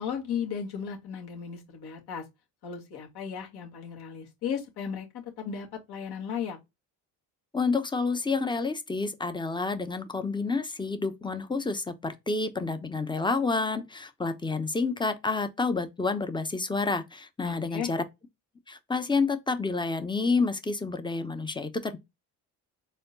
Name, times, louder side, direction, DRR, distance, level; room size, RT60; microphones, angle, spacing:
voice 1, 0.0-2.2 2.6-6.6 17.4-17.9, left 7 dB, 60° left, 2.0 m, -35 dB
voice 2, 7.5-18.0 18.7-22.0, left 4 dB, 10° left, 0.8 m, -29 dB
4.3 x 2.2 x 3.9 m
supercardioid pair, 70°, 44 cm